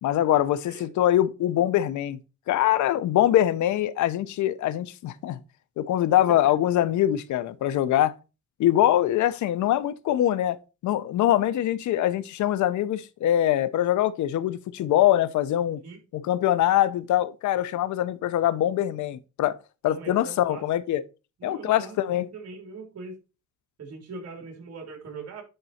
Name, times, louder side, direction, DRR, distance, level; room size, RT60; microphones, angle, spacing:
voice 1, 0.0-2.2 2.5-5.4 5.8-8.1 8.6-10.6 10.8-15.8 16.1-19.6 19.8-21.0 21.4-22.2, left 12 dB, 75° left, 0.8 m, -23 dB
voice 2, 19.8-20.6 21.4-22.0 22.3-23.2 23.8-25.4, right 4 dB, 60° right, 3.3 m, -41 dB
10.5 x 4.0 x 4.3 m
cardioid pair, 105°, 29 cm